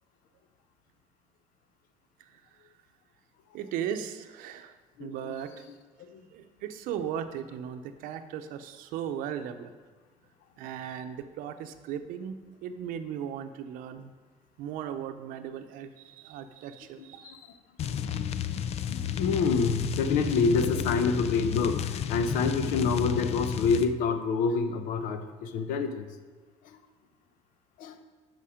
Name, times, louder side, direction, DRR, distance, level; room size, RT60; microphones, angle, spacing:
voice 1, 2.2-2.6 3.5-4.7 5.0-5.6 6.3-9.7 10.6-14.1 14.6-17.4, right 9 dB, 85° right, 9 dB, 0.7 m, -37 dB
voice 2, 5.0-5.4 6.1-6.2 17.0-17.5 18.8-26.1 26.6-26.8 27.8-28.0, left 4 dB, 85° left, 9 dB, 0.7 m, -27 dB
sound 1, 17.8-23.9, left 9 dB, 50° left, 0.4 m, -32 dB
8.5 x 5.8 x 5.0 m, 1.4 s
cardioid pair, 115°, 14 cm